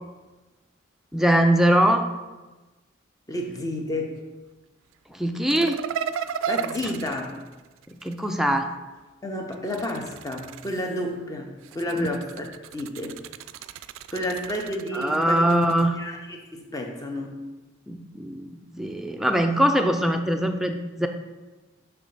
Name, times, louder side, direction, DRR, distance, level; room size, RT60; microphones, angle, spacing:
voice 1, 1.1-2.0 5.1-5.8 7.9-8.7 12.0-12.1 14.9-16.0 17.9-21.1, right 1 dB, ahead, 5 dB, 0.3 m, -22 dB
voice 2, 3.3-4.2 6.5-7.3 9.2-12.5 12.7-13.2 14.1-17.4, left 1 dB, 20° left, 2 dB, 0.7 m, -31 dB
sound 1, 5.5-8.3 9.5-11.1 11.6-15.9, right 8 dB, 85° right, 0.3 m, -35 dB
6.2 x 3.3 x 5.5 m, 1.2 s
head